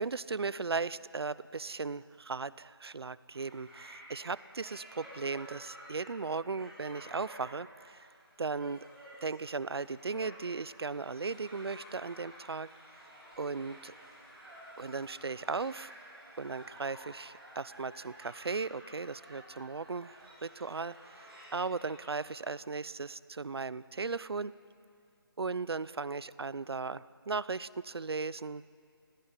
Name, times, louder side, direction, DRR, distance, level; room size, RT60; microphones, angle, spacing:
voice 1, 0.0-8.1 8.4-8.8 9.2-12.7 13.4-13.9 14.8-15.9 16.4-24.5 25.4-28.6, right 4 dB, 80° right, 18 dB, 0.7 m, -37 dB
sound 1, 3.3-22.1, equal, 5° right, 4.4 m, -53 dB
26.0 x 17.5 x 9.9 m, 2.5 s
figure-of-eight pair, 175°, 13 cm